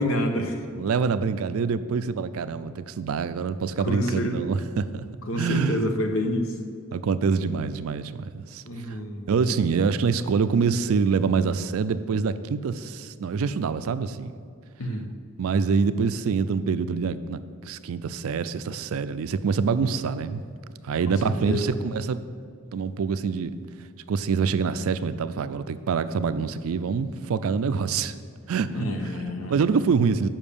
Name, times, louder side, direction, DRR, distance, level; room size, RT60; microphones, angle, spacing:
voice 1, 0.0-0.6 3.8-4.4 5.3-6.5 8.6-9.6 14.8-15.1 21.1-21.7 28.7-29.6, equal, 65° left, 4 dB, 0.9 m, -28 dB
voice 2, 0.7-5.1 5.4-5.8 6.9-9.0 9.3-14.3 15.4-20.4 20.8-22.2 22.7-23.5 24.1-28.1 28.5-28.8 29.5-30.3, right 5 dB, 70° right, 13 dB, 0.4 m, -25 dB
7.2 x 5.7 x 6.8 m, 2.2 s
head